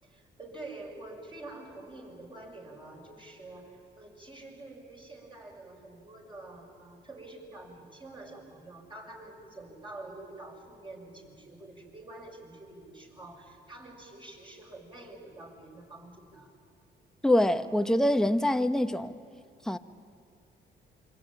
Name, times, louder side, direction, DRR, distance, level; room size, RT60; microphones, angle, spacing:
voice 1, 0.0-16.5, right 2 dB, 25° right, 6.5 m, -47 dB
voice 2, 17.2-19.2 19.6-19.8, left 1 dB, 5° left, 1.1 m, -25 dB
27.0 x 24.5 x 9.0 m
cardioid pair, 90°, 20 cm